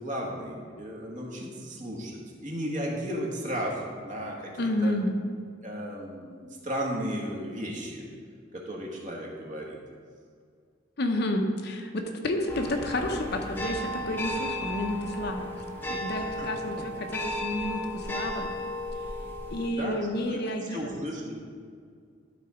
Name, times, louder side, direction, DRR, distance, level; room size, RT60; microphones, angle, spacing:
voice 1, 0.0-4.9 5.6-8.1 8.5-9.8 16.2-16.5 19.7-20.0 20.3-21.4, equal, 40° right, -2 dB, 1.5 m, -35 dB
voice 2, 4.6-5.1 11.0-15.6 15.9-18.5 19.5-20.9, left 1 dB, 55° left, 4 dB, 0.8 m, -30 dB
sound 1, 12.5-19.7, left 1 dB, 10° left, 0.8 m, -34 dB
12.0 x 4.1 x 4.9 m, 2.1 s
head